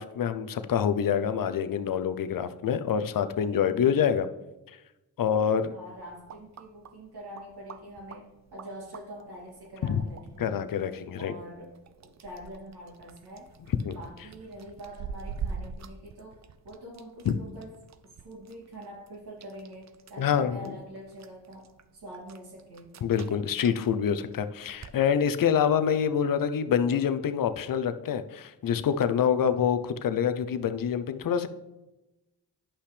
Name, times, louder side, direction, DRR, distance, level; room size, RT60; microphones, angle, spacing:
voice 1, 0.0-4.3 5.2-5.7 9.8-10.0 10.4-11.3 13.8-13.9 17.3-17.4 20.2-20.6 23.0-31.5, left 8 dB, 55° left, 11 dB, 0.7 m, -26 dB
voice 2, 3.2-3.9 5.7-10.6 11.2-11.7 12.0-13.5 13.9-16.4 16.6-17.7 18.0-22.9, right 1 dB, 70° right, -3 dB, 2.8 m, -45 dB
sound 1, 5.8-25.0, right 6 dB, 45° right, 0.6 m, -46 dB
9.9 x 5.7 x 3.4 m, 1.0 s
supercardioid pair, 40°, 40 cm